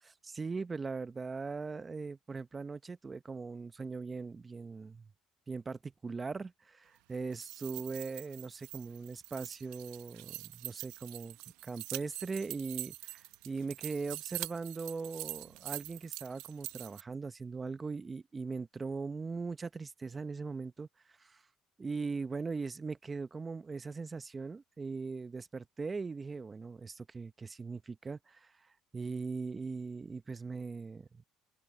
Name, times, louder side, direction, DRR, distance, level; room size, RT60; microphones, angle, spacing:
voice 1, 0.2-5.1 5.5-11.4 11.6-20.9 21.2-21.4 21.8-28.5 28.9-31.2, right 4 dB, 25° right, 1.0 m, -40 dB
sound 1, 7.2-17.0, right 19 dB, 85° right, 1.0 m, -44 dB
open air
supercardioid pair, 80°, 0 cm